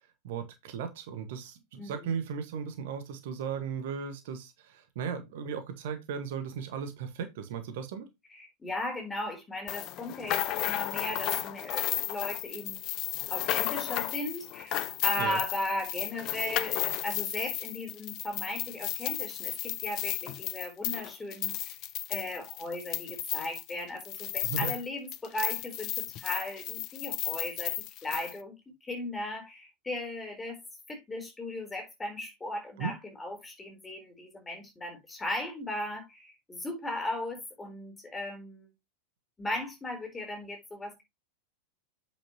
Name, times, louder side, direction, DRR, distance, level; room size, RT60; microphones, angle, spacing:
voice 1, 0.2-8.1 15.2-15.4 24.4-24.7 32.8-32.9, right 6 dB, 55° right, 1.6 m, -36 dB
voice 2, 1.7-2.1 8.3-12.9 13.3-21.7 22.1-28.6 28.8-30.6 30.9-38.7 39.4-41.0, left 1 dB, 10° left, 4.1 m, -37 dB
sound 1, 9.7-24.9 25.1-28.3, left 15 dB, 40° left, 0.6 m, -34 dB
8.6 x 6.9 x 3.0 m
figure-of-eight pair, 90°, 0 cm